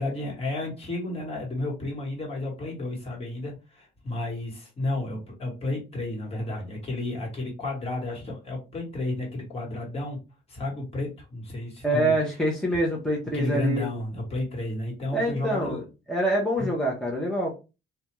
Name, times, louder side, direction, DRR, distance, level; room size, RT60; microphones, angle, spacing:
voice 1, 0.0-10.2 10.5-12.1 13.3-15.8 16.6-16.7, left 2 dB, 35° left, -1 dB, 1.3 m, -32 dB
voice 2, 11.8-13.8 15.1-15.8 16.1-17.6, right 1 dB, 5° left, -3 dB, 0.7 m, -25 dB
2.4 x 2.2 x 3.0 m, 0.29 s
cardioid pair, 110°, 17 cm